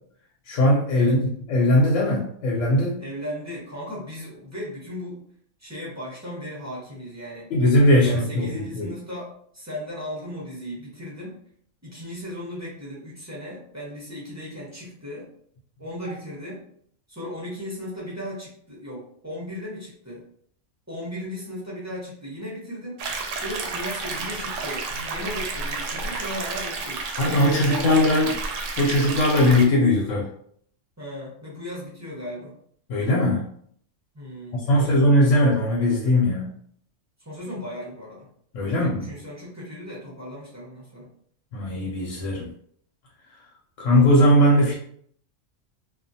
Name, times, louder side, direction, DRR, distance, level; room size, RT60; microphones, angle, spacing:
voice 1, 0.5-1.2 1.5-3.0 7.5-8.9 27.2-28.3 28.8-30.3 32.9-33.4 34.5-36.5 38.5-39.1 41.5-42.5 43.8-44.8, left 1 dB, 90° left, -4 dB, 1.0 m, -19 dB
voice 2, 3.0-5.2 5.6-7.5 8.0-11.4 11.8-15.3 15.8-16.6 17.1-20.2 20.9-23.0 23.4-27.1 27.4-28.3 31.0-32.5 34.1-35.2 37.2-38.3 38.6-41.1, equal, 15° right, -6 dB, 0.7 m, -36 dB
sound 1, 23.0-29.7, right 3 dB, 80° right, 0.9 m, -31 dB
2.5 x 2.3 x 2.6 m, 0.64 s
omnidirectional pair, 1.3 m